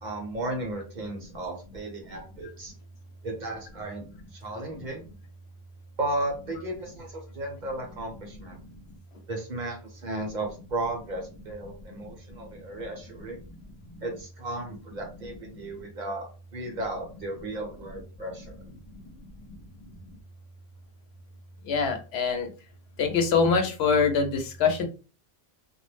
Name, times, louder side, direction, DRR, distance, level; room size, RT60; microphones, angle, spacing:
voice 1, 0.0-2.7 3.2-5.1 6.0-8.6 9.3-13.4 14.0-18.6, right 2 dB, 50° right, 1 dB, 0.8 m, -35 dB
voice 2, 21.7-22.5 23.0-24.9, left 5 dB, 80° left, 5 dB, 0.9 m, -24 dB
2.3 x 2.0 x 3.2 m, 0.34 s
omnidirectional pair, 1.1 m